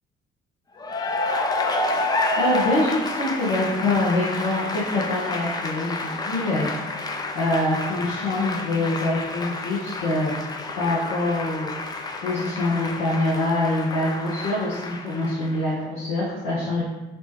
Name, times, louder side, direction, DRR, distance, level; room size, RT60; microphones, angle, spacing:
Cheering / Applause, 0.8-15.7, left 3 dB, 15° left, 0.3 m, -29 dB
voice 1, 2.4-6.7 7.3-10.3 10.7-11.7 12.2-16.8, left 2 dB, 65° left, -7 dB, 0.8 m, -24 dB
4.1 x 2.2 x 3.0 m, 1.1 s
figure-of-eight pair, 45°, 30 cm